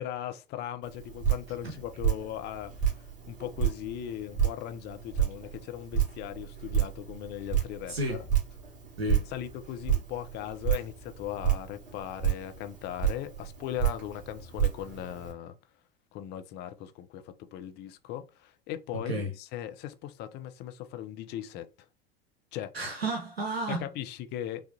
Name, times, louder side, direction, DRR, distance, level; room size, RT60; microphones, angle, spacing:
voice 1, 0.0-8.2 9.3-15.5 16.1-21.7 22.5-22.7 23.8-24.6, left 11 dB, 35° left, 0.6 m, -38 dB
Drip, 0.8-15.3, right 9 dB, 25° right, 1.8 m, -31 dB
voice 2, 7.9-8.2 9.0-9.3 19.1-19.3 22.7-23.9, right 1 dB, 90° right, 0.7 m, -32 dB
5.3 x 2.4 x 2.7 m
figure-of-eight pair, 75°, 30 cm